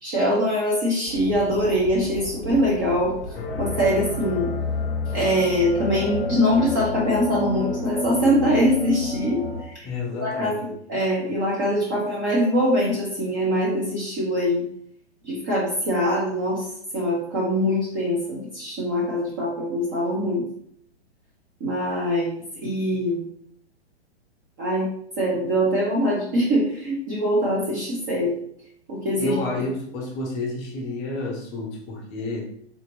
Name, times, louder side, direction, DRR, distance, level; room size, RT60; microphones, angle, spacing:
voice 1, 0.0-3.1 3.6-4.5 5.1-9.9 10.2-14.7 15.2-16.6 16.9-20.4 21.6-23.2 24.6-24.9 25.2-28.4 28.9-29.4, equal, 20° right, -5 dB, 0.4 m, -23 dB
sound 1, 1.1-9.6, left 3 dB, 60° left, 0.6 m, -30 dB
voice 2, 9.8-10.7 29.2-32.5, left 2 dB, 20° left, -1 dB, 0.7 m, -30 dB
3.6 x 2.8 x 2.4 m, 0.68 s
figure-of-eight pair, 115°, 34 cm